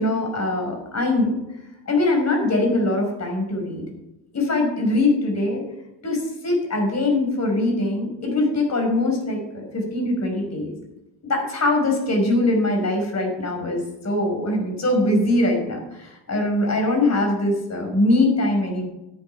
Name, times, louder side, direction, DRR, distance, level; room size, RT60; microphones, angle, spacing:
voice 1, 0.0-1.3 1.9-3.9 4.3-5.6 6.0-10.7 11.2-18.8, left 2 dB, 30° left, 2 dB, 5.4 m, -22 dB
13.0 x 9.1 x 5.6 m, 0.92 s
supercardioid pair, 90°, 50 cm